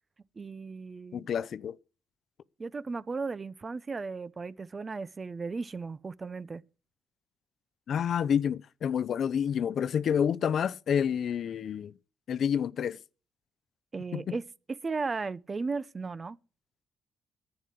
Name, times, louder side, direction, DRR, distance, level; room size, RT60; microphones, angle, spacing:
voice 1, 0.4-1.3 2.6-6.6 13.9-14.4 14.7-16.4, right 4 dB, 30° right, 0.7 m, -35 dB
voice 2, 1.1-1.8 7.9-11.9 12.3-13.0 14.1-14.3, left 8 dB, 60° left, 0.6 m, -29 dB
11.0 x 9.4 x 8.3 m
cardioid pair, 90°, 0 cm